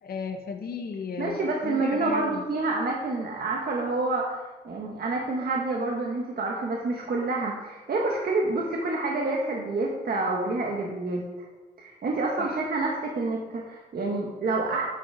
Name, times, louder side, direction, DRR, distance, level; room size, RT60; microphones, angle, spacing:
voice 1, 0.0-2.4 12.4-12.6, left 5 dB, 70° left, 5 dB, 1.0 m, -35 dB
voice 2, 1.2-11.2 11.8-14.8, right 3 dB, 65° right, -1 dB, 1.3 m, -28 dB
8.3 x 5.9 x 5.7 m, 1.2 s
cardioid pair, 95°, 17 cm